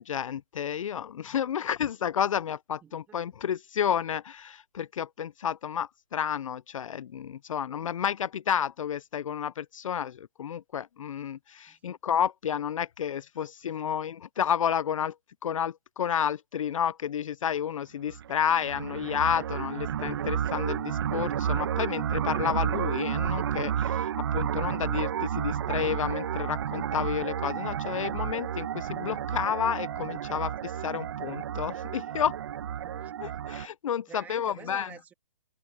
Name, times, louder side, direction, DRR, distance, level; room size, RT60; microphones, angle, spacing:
voice 1, 0.0-15.1 15.4-32.4 33.2-34.9, left 8 dB, 70° left, 0.4 m, -31 dB
voice 2, 2.8-3.2 11.7-12.0 32.8-33.2 34.1-35.1, right 7 dB, 10° right, 2.7 m, -49 dB
sound 1, 18.1-33.7, right 9 dB, 45° right, 1.1 m, -31 dB
hypercardioid pair, 165°, 17 cm